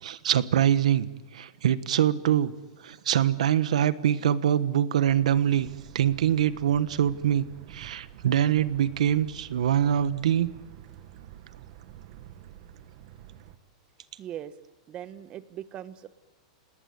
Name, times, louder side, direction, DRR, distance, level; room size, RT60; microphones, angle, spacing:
voice 1, 0.0-2.5 2.8-5.7 5.9-7.4 7.7-10.5, right 10 dB, 85° right, 14 dB, 1.3 m, -24 dB
sound 1, 5.1-13.6, right 11 dB, 50° right, 2.0 m, -48 dB
voice 2, 14.2-14.5 14.9-16.1, right 11 dB, 30° right, 13 dB, 1.2 m, -39 dB
28.0 x 19.0 x 9.5 m, 1.3 s
supercardioid pair, 145°, 4 cm